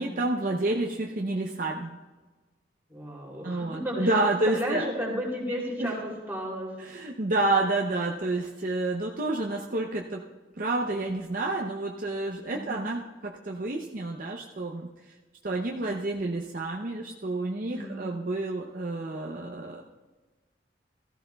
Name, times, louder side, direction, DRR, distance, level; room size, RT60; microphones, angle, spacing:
voice 1, 0.0-2.0 3.4-4.9 5.8-5.9 6.8-10.2 10.6-14.9 15.4-19.8, right 2 dB, 45° right, 1 dB, 0.6 m, -29 dB
voice 2, 2.9-4.2 4.4-6.7 12.5-12.8 17.7-18.1, equal, 10° right, -4 dB, 2.9 m, -33 dB
16.0 x 14.0 x 2.3 m, 1.3 s
head